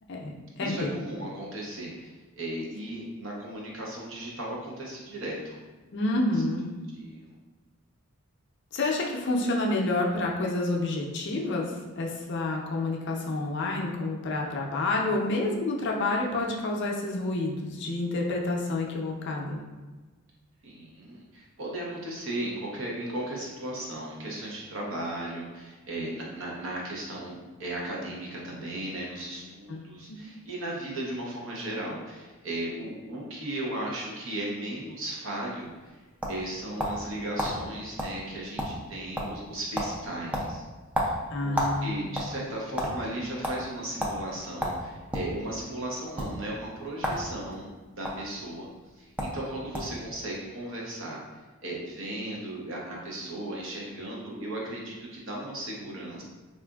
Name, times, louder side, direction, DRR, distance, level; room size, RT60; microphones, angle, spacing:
voice 1, 0.1-1.0 5.9-6.7 8.7-11.7 12.0-19.6 29.7-30.2 41.3-42.1, left 2 dB, 55° left, 0 dB, 0.5 m, -29 dB
voice 2, 0.6-5.6 6.9-7.2 20.6-35.7 36.3-40.6 41.0-47.7 48.0-48.7 49.0-51.2 51.6-56.2, right 1 dB, 60° right, -3 dB, 0.7 m, -36 dB
sound 1, 35.6-37.1 37.4-37.5 38.0-38.2 38.4-38.9 39.2-39.5 39.8-39.9 40.3-41.8 42.1-42.9 43.4-43.6 44.0-44.2 44.6-45.3 46.1-46.3 47.0-47.2 47.5-48.1 48.9-49.0 49.2-49.4 49.7-50.0, equal, 5° right, 0.3 m, -30 dB
3.7 x 2.5 x 2.3 m, 1.3 s
head